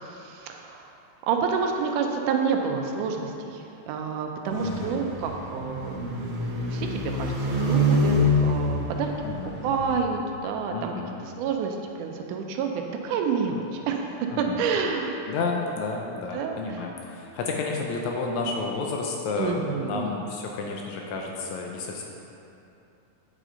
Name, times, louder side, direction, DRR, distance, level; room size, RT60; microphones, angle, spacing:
voice 1, 0.0-1.0 1.3-6.0 6.7-8.2 8.4-9.1 9.4-10.9 11.2-15.1 16.3-16.6 19.4-20.1, right 6 dB, 85° right, 3 dB, 2.1 m, -29 dB
sound 1, 4.5-10.0, left 1 dB, 70° right, 1.3 m, -26 dB
voice 2, 4.6-5.1 9.2-9.6 10.7-11.2 14.3-14.6 15.3-22.0, left 3 dB, 80° left, 0 dB, 1.8 m, -31 dB
8.6 x 5.0 x 3.7 m, 2.8 s
omnidirectional pair, 3.6 m